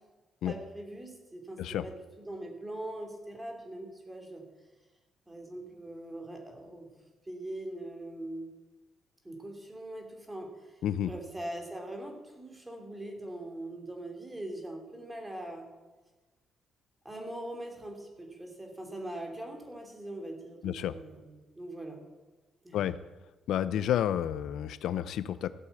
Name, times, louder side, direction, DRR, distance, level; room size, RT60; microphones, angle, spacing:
voice 1, 0.4-4.4 5.3-6.9 7.2-8.5 9.2-10.8 11.1-15.7 17.0-22.0 22.6-22.8, right 1 dB, 10° right, 3 dB, 2.9 m, -42 dB
voice 2, 20.6-20.9 22.7-23.0 23.5-25.5, left 10 dB, 75° left, 14 dB, 0.6 m, -30 dB
15.0 x 8.4 x 8.3 m, 1.2 s
cardioid pair, 140°, 0 cm